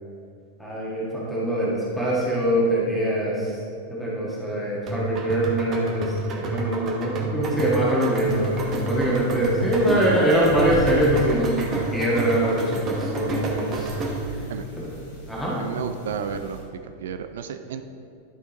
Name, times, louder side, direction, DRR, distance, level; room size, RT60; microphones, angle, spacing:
voice 1, 0.6-3.6 3.9-13.9 15.3-15.5, right 1 dB, 5° left, -7 dB, 1.7 m, -23 dB
sound 1, 4.9-14.4, right 2 dB, 30° right, 1.2 m, -30 dB
sound 2, 8.2-16.6, equal, 65° left, 1.9 m, -38 dB
voice 2, 15.6-17.8, right 7 dB, 60° right, 8 dB, 0.4 m, -32 dB
11.5 x 5.6 x 3.0 m, 2.5 s
figure-of-eight pair, 90°, 0 cm